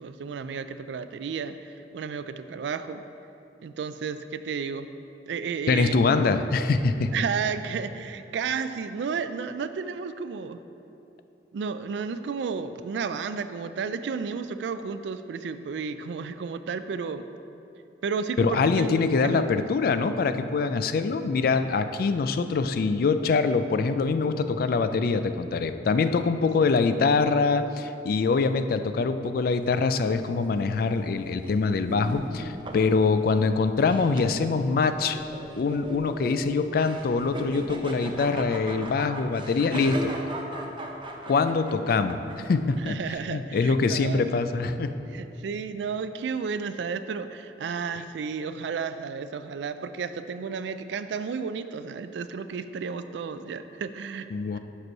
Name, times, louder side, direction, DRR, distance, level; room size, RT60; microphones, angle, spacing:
voice 1, 0.0-1.6 1.9-3.0 3.6-4.9 5.3-5.9 7.1-10.6 11.5-17.2 18.0-19.6 42.8-44.2 45.1-54.3 54.5-54.6, right 5 dB, 80° right, 11 dB, 0.3 m, -32 dB
voice 2, 5.7-7.1 18.4-35.2 35.6-40.2 41.3-43.0 43.3-44.9 54.3-54.6, left 4 dB, 55° left, 10 dB, 0.3 m, -24 dB
sound 1, 29.6-43.2, right 1 dB, 30° right, 0.6 m, -39 dB
6.1 x 5.3 x 5.4 m, 2.8 s
head